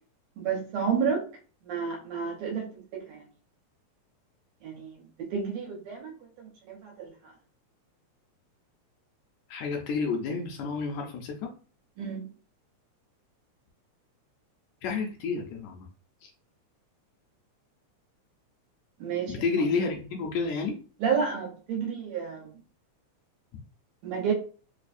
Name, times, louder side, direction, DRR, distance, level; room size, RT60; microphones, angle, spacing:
voice 1, 0.4-1.2 1.6-3.2 4.6-5.0 5.3-7.1 12.0-12.2 19.0-19.3 21.0-22.5 24.0-24.3, right 6 dB, 70° right, -1 dB, 2.1 m, -31 dB
voice 2, 9.5-11.5 14.8-15.9 16.2-16.3 19.3-20.8, left 4 dB, 75° left, 2 dB, 1.8 m, -30 dB
4.7 x 2.3 x 2.5 m, 0.39 s
omnidirectional pair, 3.4 m